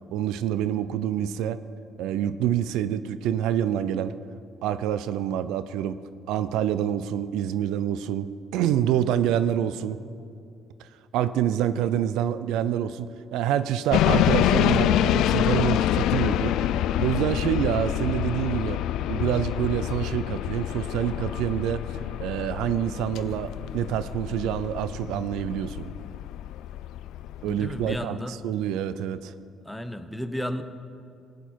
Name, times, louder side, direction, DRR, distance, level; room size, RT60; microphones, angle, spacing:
voice 1, 0.1-1.6 2.0-4.2 4.6-6.0 6.3-10.0 10.8-10.9 11.1-16.6 17.0-18.8 19.1-21.9 22.2-25.9 27.4-29.3, right 10 dB, 85° right, 14 dB, 0.4 m, -27 dB
sound 1, 13.9-28.0, left 11 dB, 80° left, 0.4 m, -26 dB
voice 2, 27.4-28.4 29.6-30.6, equal, 5° left, 9 dB, 0.8 m, -33 dB
15.5 x 9.2 x 4.6 m, 2.4 s
cardioid pair, 90°, 0 cm